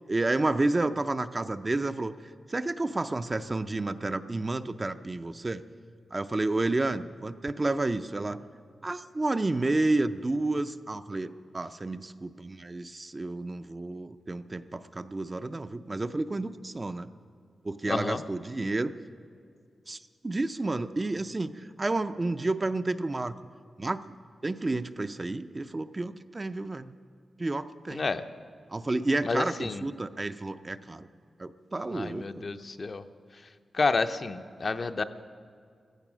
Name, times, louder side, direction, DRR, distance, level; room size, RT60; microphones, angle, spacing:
voice 1, 0.1-5.6 6.1-8.4 8.8-17.1 17.6-18.9 19.9-20.0 20.2-23.4 23.8-24.0 24.4-26.9 27.4-28.1 28.7-31.1 31.4-32.4, right 2 dB, 25° right, 10 dB, 0.5 m, -30 dB
voice 2, 17.9-18.2 27.9-28.2 29.2-29.8 31.9-33.0 33.7-35.0, left 4 dB, 40° left, 9 dB, 0.6 m, -30 dB
16.0 x 14.5 x 6.2 m, 2.2 s
wide cardioid pair, 135°, 0 cm